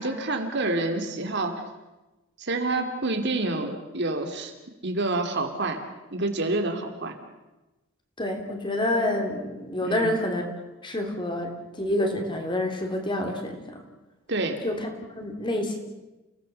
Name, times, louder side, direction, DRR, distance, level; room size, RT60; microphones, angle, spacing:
voice 1, 0.0-1.6 2.4-4.5 4.8-5.8 6.1-7.1 9.8-10.2 14.3-14.6, right 2 dB, 55° right, 5 dB, 2.7 m, -28 dB
voice 2, 8.2-10.5 10.8-13.8 14.6-14.9 15.2-15.8, left 1 dB, 20° left, 4 dB, 3.1 m, -28 dB
30.0 x 17.5 x 6.9 m, 1.1 s
head